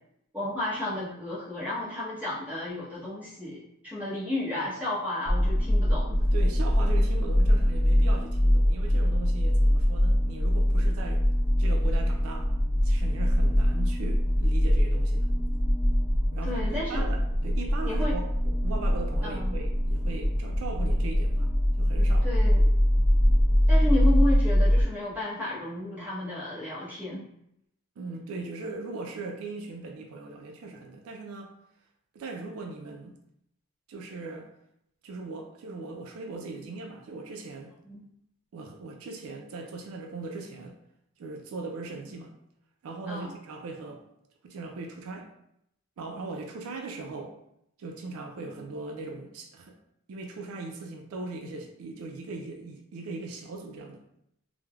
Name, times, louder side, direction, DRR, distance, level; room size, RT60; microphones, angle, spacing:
voice 1, 0.3-3.6 3.8-6.2 16.4-17.1 17.8-18.2 19.2-19.6 22.2-22.6 23.7-27.2 37.8-38.0 43.1-43.3, left 1 dB, 5° right, -9 dB, 0.8 m, -32 dB
sound 1, 5.2-24.8, equal, 80° left, 0.8 m, -23 dB
voice 2, 6.2-11.2 11.6-12.5 12.8-15.3 16.3-21.5 21.8-22.4 28.0-31.5 32.1-33.1 33.9-34.5 35.0-37.7 38.5-40.8 41.2-42.3 42.8-44.0 44.4-45.3 46.0-47.3 47.8-49.8 50.1-54.0, right 3 dB, 85° right, 3 dB, 0.4 m, -39 dB
3.2 x 2.0 x 2.3 m, 0.76 s
head